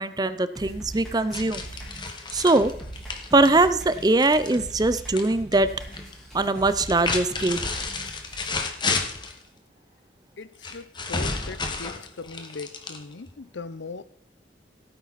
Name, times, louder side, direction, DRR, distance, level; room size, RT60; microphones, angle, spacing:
voice 1, 0.0-1.6 2.3-2.7 3.3-5.7 6.3-7.6, right 2 dB, 20° right, 0.5 m, -21 dB
sound 1, 0.6-8.5, right 1 dB, 5° left, 3.4 m, -41 dB
sound 2, 1.3-5.3 5.5-6.1 6.7-9.4 10.6-13.3, left 4 dB, 25° left, 1.3 m, -31 dB
voice 2, 10.4-14.0, left 4 dB, 75° left, 0.7 m, -39 dB
16.0 x 9.1 x 4.1 m
head